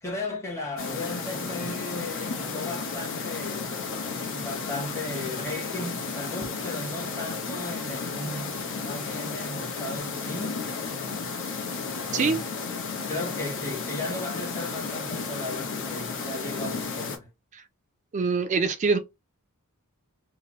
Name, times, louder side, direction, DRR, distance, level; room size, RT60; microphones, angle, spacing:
voice 1, 0.0-3.7 4.3-10.6 12.1-12.5 12.9-17.3, left 2 dB, 15° left, 0.9 m, -36 dB
sound 1, 0.8-17.2, left 4 dB, 60° left, 0.8 m, -33 dB
voice 2, 18.1-19.0, right 4 dB, 35° right, 0.4 m, -24 dB
2.9 x 2.0 x 2.9 m
head